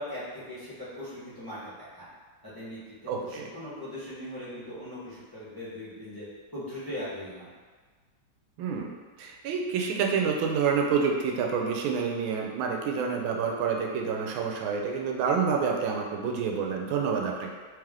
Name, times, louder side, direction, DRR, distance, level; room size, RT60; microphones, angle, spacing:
voice 1, 0.0-2.1 2.4-6.3 6.5-7.5, left 1 dB, 15° left, -12 dB, 0.8 m, -40 dB
voice 2, 3.1-3.5 8.6-17.5, right 6 dB, 90° right, 1 dB, 1.4 m, -28 dB
3.4 x 3.1 x 3.6 m, 1.5 s
omnidirectional pair, 2.1 m